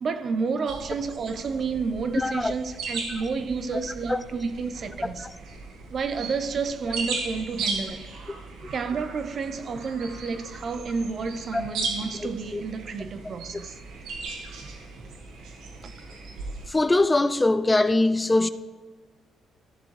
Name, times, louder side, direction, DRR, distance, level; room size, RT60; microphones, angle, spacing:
voice 1, 0.0-5.3 5.9-8.1 8.7-13.8, right 5 dB, 50° right, 0.7 m, -30 dB
sound 1, 0.7-16.7, right 4 dB, 80° right, 1.5 m, -37 dB
voice 2, 2.2-2.5 4.1-4.2 11.5-11.6 12.5-12.6 16.7-18.5, left 2 dB, 15° left, 0.4 m, -21 dB
14.0 x 7.0 x 3.3 m
cardioid pair, 90°, 0 cm